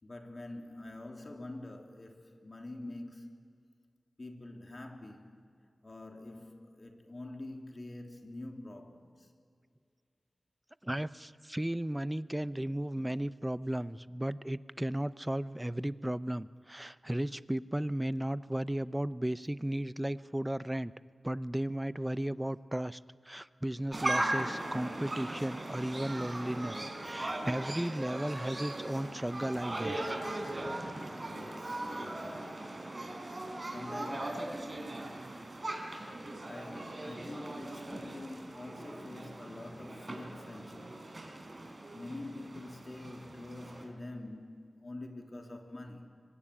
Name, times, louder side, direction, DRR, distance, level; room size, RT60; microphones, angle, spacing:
voice 1, 0.0-3.3 4.2-5.4 5.8-9.3 31.2-32.8 33.6-34.7 36.4-41.0 41.9-46.1, left 2 dB, 40° left, 3.3 m, -46 dB
voice 2, 10.8-20.9 21.2-23.0 23.3-26.8 27.0-30.2 30.9-31.0 35.9-36.1, right 1 dB, 10° right, 0.7 m, -35 dB
sound 1, 23.9-43.8, right 1 dB, 35° right, 4.6 m, -39 dB
24.5 x 24.5 x 10.0 m
wide cardioid pair, 75°, 0 cm